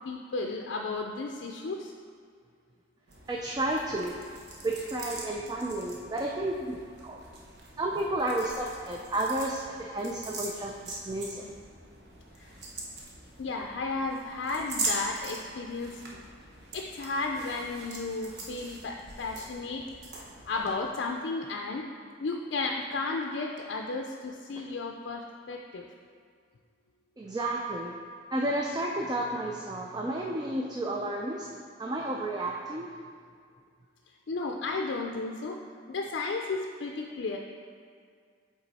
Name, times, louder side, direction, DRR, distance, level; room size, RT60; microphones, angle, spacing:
voice 1, 0.0-1.9 12.4-12.5 13.4-16.2 16.7-19.8 20.5-21.9 22.2-25.9 34.3-35.6 35.9-37.4, left 3 dB, 75° left, 1 dB, 0.4 m, -33 dB
sound 1, 3.1-20.7, right 3 dB, 60° right, 1.0 m, -42 dB
voice 2, 3.3-4.2 4.6-6.8 7.0-7.2 7.8-11.5 27.2-27.9 28.3-31.5 31.8-32.9, right 1 dB, 20° right, -1 dB, 0.3 m, -31 dB
8.0 x 3.7 x 4.1 m, 2.1 s
head